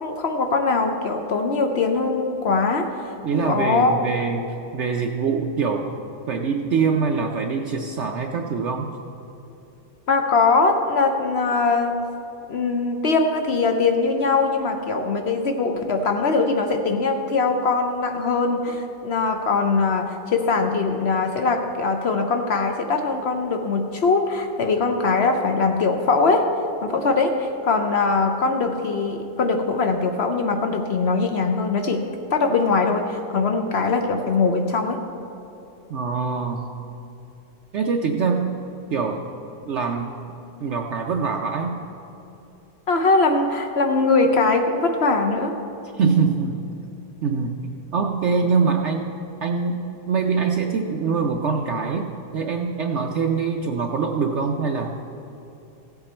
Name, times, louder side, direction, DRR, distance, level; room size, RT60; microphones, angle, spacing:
voice 1, 0.0-4.0 10.1-12.0 12.5-26.4 26.8-32.0 32.3-35.0 42.9-45.5, left 4 dB, 65° left, 5 dB, 0.6 m, -21 dB
voice 2, 3.2-5.9 6.3-8.9 35.9-36.6 37.7-39.3 39.7-40.1 40.6-41.8 45.9-46.6 47.2-49.1 49.4-55.0, right 5 dB, 80° right, 2 dB, 0.6 m, -24 dB
16.0 x 8.0 x 4.3 m, 2.9 s
omnidirectional pair, 1.9 m